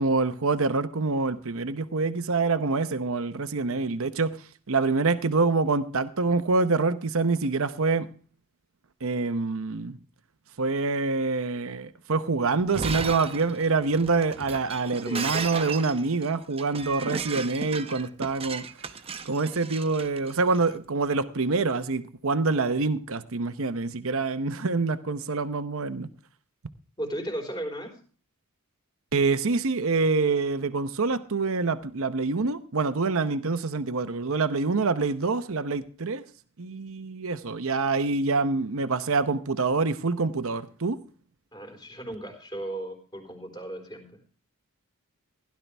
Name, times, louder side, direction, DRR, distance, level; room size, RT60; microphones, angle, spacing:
voice 1, 0.0-4.4 4.7-8.1 9.0-10.0 10.6-18.6 19.2-26.1 29.1-36.2 36.6-41.0, right 3 dB, 65° right, 0.8 m, -26 dB
Shatter, 12.6-20.6, right 4 dB, 25° right, 0.8 m, -35 dB
voice 2, 15.0-15.5 27.0-27.9 41.5-44.1, right 1 dB, 20° left, 3.9 m, -36 dB
16.5 x 11.5 x 3.4 m
head